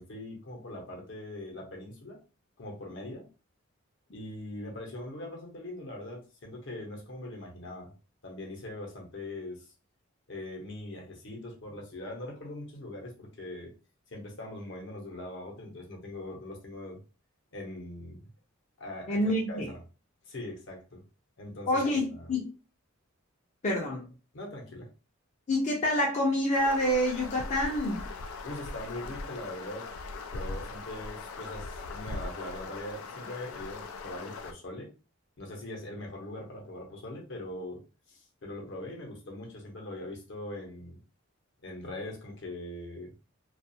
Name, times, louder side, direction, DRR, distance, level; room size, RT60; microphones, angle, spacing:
voice 1, 0.0-2.2 2.6-3.2 4.1-7.9 8.2-9.7 10.3-13.7 14.1-17.0 17.5-18.3 18.8-19.8 20.2-21.0 21.4-21.8 22.1-22.3 24.3-24.9 28.4-29.9 30.3-34.9 35.4-41.0 41.6-43.1, left 1 dB, 60° left, -1 dB, 0.8 m, -41 dB
voice 2, 19.1-19.7 21.7-22.4 23.6-24.1 25.5-28.0, left 1 dB, 35° left, -3 dB, 0.5 m, -27 dB
sound 1, 26.5-34.5, left 3 dB, 85° left, 0.4 m, -40 dB
2.3 x 2.3 x 2.7 m, 0.34 s
head